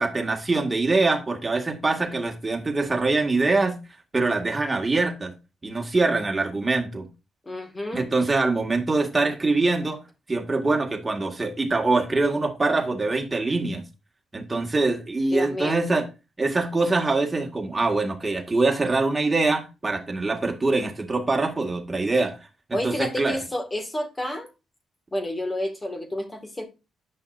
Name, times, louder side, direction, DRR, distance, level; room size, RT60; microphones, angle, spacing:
voice 1, 0.0-3.8 4.1-5.3 5.6-7.1 7.9-10.0 10.3-13.8 14.3-16.0 16.4-22.3 22.8-23.4, right 3 dB, 20° right, 1.9 m, -24 dB
voice 2, 7.5-8.1 15.3-15.8 22.7-24.5 25.1-26.6, left 1 dB, 20° left, 2.0 m, -30 dB
8.6 x 5.8 x 2.6 m
cardioid pair, 90°, 0 cm